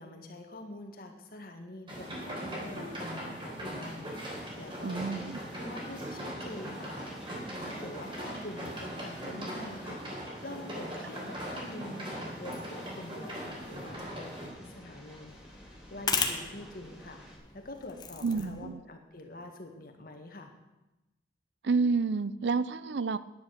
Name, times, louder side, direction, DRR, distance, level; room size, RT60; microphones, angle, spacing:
voice 1, 0.0-15.4 15.9-17.2 17.5-20.5, left 1 dB, 55° left, 4 dB, 1.8 m, -45 dB
sound 1, 1.9-14.5, equal, 30° right, 3.7 m, -40 dB
Train, 4.2-17.4, equal, 5° right, 2.6 m, -50 dB
voice 2, 4.8-5.4 18.2-18.8 21.6-23.2, right 4 dB, 85° right, 16 dB, 0.5 m, -29 dB
sound 2, 13.2-18.7, left 5 dB, 25° left, 1.3 m, -38 dB
10.5 x 10.0 x 6.5 m, 1.0 s
head